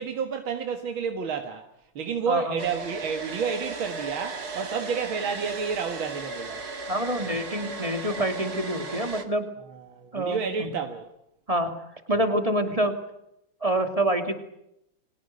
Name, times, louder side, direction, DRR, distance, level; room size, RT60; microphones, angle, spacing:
voice 1, 0.0-1.7 2.0-6.7 9.7-11.1, right 6 dB, 85° right, 2.5 m, -30 dB
voice 2, 2.3-2.6 6.9-9.5 10.1-10.7 11.5-11.8 12.1-13.0 13.6-14.3, right 1 dB, 15° right, 2.6 m, -26 dB
Domestic sounds home sounds, 2.6-9.2, right 3 dB, 50° right, 2.8 m, -36 dB
29.5 x 24.0 x 6.7 m
omnidirectional pair, 2.2 m